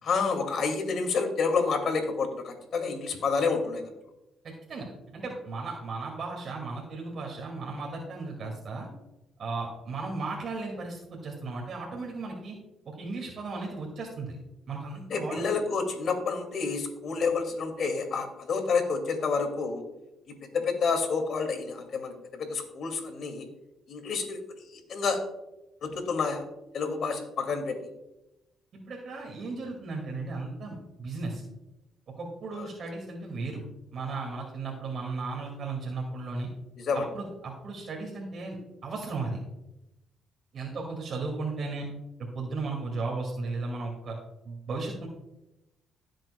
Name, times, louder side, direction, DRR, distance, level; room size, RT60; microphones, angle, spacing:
voice 1, 0.0-3.9 15.1-19.8 20.5-23.5 23.9-24.4 24.9-25.2 25.8-26.4 26.7-27.8 32.6-32.7 36.8-37.0, left 4 dB, 60° left, 5 dB, 2.2 m, -29 dB
voice 2, 4.4-4.9 5.1-8.9 9.4-12.6 12.9-14.4 14.7-15.4 28.7-31.4 32.2-33.6 33.9-36.5 36.9-39.4 40.5-41.9 42.2-44.1 44.4-45.1, right 3 dB, 60° right, -1 dB, 2.2 m, -35 dB
16.0 x 7.7 x 2.3 m, 0.93 s
cardioid pair, 90°, 0 cm